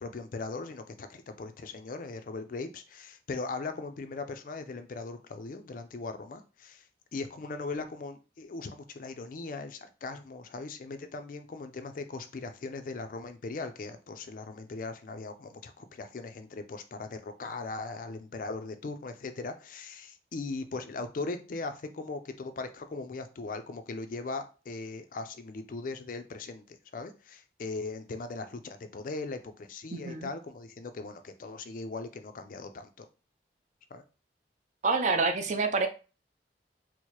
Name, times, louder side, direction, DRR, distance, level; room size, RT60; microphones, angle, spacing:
voice 1, 0.0-6.9 7.1-33.1 33.9-34.0, left 3 dB, 50° left, 9 dB, 0.4 m, -39 dB
voice 2, 29.9-30.3 34.8-35.9, right 3 dB, 40° right, 6 dB, 0.4 m, -27 dB
4.5 x 2.0 x 2.9 m, 0.34 s
head